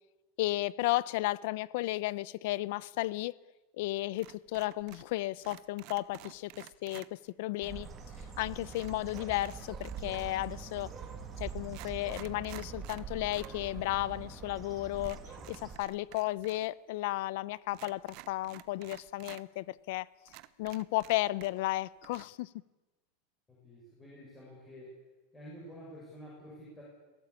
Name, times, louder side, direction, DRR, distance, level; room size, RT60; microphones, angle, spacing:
voice 1, 0.4-3.3 3.8-7.9 8.4-10.9 11.4-15.2 15.5-20.1 20.6-22.5, left 17 dB, 60° left, 0.7 m, -34 dB
sound 1, 4.2-5.1 5.4-7.1 8.7-10.5 11.2-11.3 11.6-13.6 13.9-14.0 15.0-16.7 16.9-17.0 17.7-19.4 19.9-20.0 20.3-21.8 22.0-22.2, right 18 dB, 45° right, 1.0 m, -52 dB
Bird, 7.6-15.8, right 5 dB, 20° right, 2.7 m, -44 dB
voice 2, 23.5-25.0 25.3-26.8, equal, 10° left, 6.8 m, -49 dB
26.5 x 17.5 x 8.5 m
supercardioid pair, 165°, 0 cm